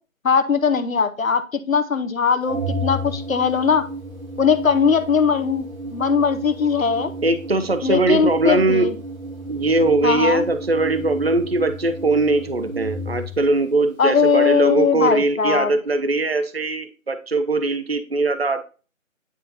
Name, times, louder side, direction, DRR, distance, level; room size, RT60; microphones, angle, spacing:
voice 1, 0.2-3.8 4.4-7.1 7.8-8.9 10.0-10.4 14.0-15.7, left 6 dB, 75° left, 10 dB, 0.9 m, -20 dB
Organ, 2.5-13.5, right 1 dB, 85° right, 2.3 m, -33 dB
voice 2, 7.2-8.9 9.5-18.6, right 2 dB, 50° right, 10 dB, 0.5 m, -21 dB
9.1 x 3.9 x 2.7 m, 0.35 s
figure-of-eight pair, 180°, 41 cm